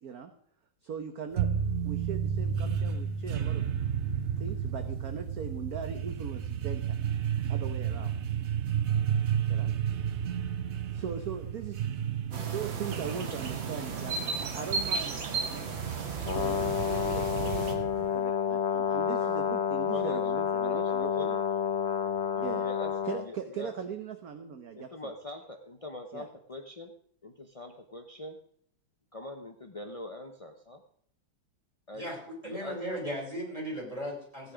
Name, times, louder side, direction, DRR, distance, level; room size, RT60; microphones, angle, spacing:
voice 1, 0.8-1.5 1.8-3.7 4.4-7.0 7.5-8.1 9.5-9.7 10.9-11.8 12.5-15.9 16.3-21.4 22.4-22.7 23.0-25.1 26.1-26.3, right 7 dB, 55° right, 7 dB, 1.3 m, -40 dB
sound 1, 1.4-18.2, right 8 dB, 90° right, 0.6 m, -32 dB
sound 2, 12.3-17.7, right 4 dB, 70° right, 2.5 m, -35 dB
Brass instrument, 16.2-23.3, left 8 dB, 40° left, 1.1 m, -29 dB
voice 2, 19.9-20.2 20.6-21.3 22.3-22.9 23.2-23.7 24.7-26.9 27.2-28.4 29.1-30.8 31.9-32.1 32.4-32.8, left 2 dB, 60° left, 5 dB, 0.3 m, -42 dB
voice 3, 32.0-34.5, equal, 15° right, -3 dB, 5.9 m, -37 dB
16.5 x 9.6 x 5.1 m, 0.62 s
omnidirectional pair, 2.2 m